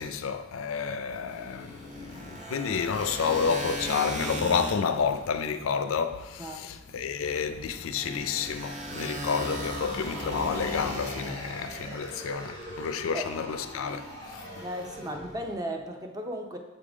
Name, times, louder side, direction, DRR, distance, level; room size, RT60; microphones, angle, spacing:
voice 1, 0.0-14.6, left 6 dB, 90° left, 0.4 m, -30 dB
sound 1, 1.3-6.0 6.9-12.7 14.0-14.4 14.8-15.6, equal, 35° right, 0.9 m, -38 dB
sound 2, 7.9-15.3, equal, 70° right, 1.7 m, -43 dB
voice 2, 14.6-16.6, right 1 dB, 20° right, 0.5 m, -35 dB
6.9 x 3.7 x 4.8 m
head